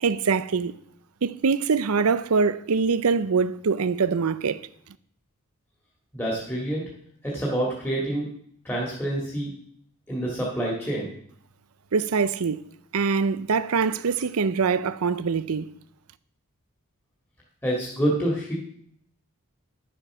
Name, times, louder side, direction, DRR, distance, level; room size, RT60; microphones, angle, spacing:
voice 1, 0.0-0.7 1.2-4.7 11.9-12.6 12.9-15.8, right 5 dB, 80° right, 0.6 m, -24 dB
voice 2, 6.1-6.8 7.2-8.3 8.6-9.5 10.1-11.1 17.6-18.5, right 1 dB, 10° left, 2.1 m, -27 dB
11.0 x 7.2 x 6.1 m
head